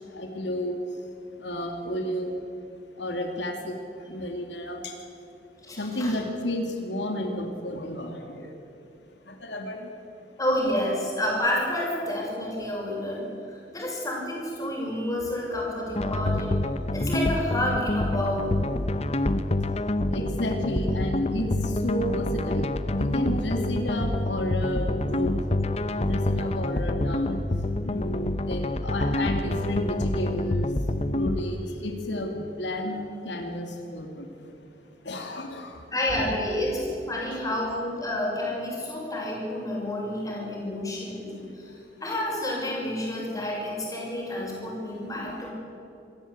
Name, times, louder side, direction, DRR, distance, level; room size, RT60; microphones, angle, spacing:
voice 1, 0.1-0.8 1.4-2.4 3.0-3.7 4.1-4.9 5.8-8.5 9.3-9.9 20.1-25.4 25.9-27.4 27.8-30.7 31.1-33.0 33.2-34.5 35.0-35.8, equal, 90° left, 3 dB, 2.5 m, -31 dB
voice 2, 5.6-6.2 10.4-16.5 16.9-18.6 22.0-22.1 35.9-41.7 42.0-45.5, left 1 dB, 20° left, -2 dB, 6.6 m, -29 dB
sound 1, 16.0-31.4, left 1 dB, 35° left, 0.9 m, -27 dB
26.0 x 14.5 x 8.8 m, 2.8 s
head